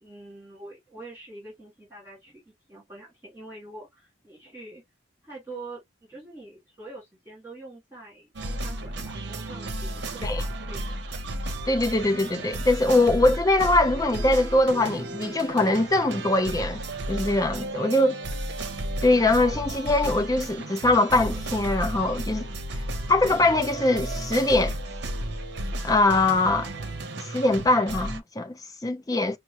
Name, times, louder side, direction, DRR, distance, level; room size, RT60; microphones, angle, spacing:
voice 1, 0.0-2.4 2.7-4.8 5.2-10.9, right 2 dB, 10° right, 2.2 m, -45 dB
sound 1, 8.3-28.2, right 1 dB, 65° right, 0.7 m, -33 dB
voice 2, 11.7-16.8 17.1-18.2 19.0-22.5 23.1-24.8 25.8-26.7 27.2-29.4, left 2 dB, 20° left, 0.5 m, -22 dB
5.8 x 2.0 x 2.8 m
head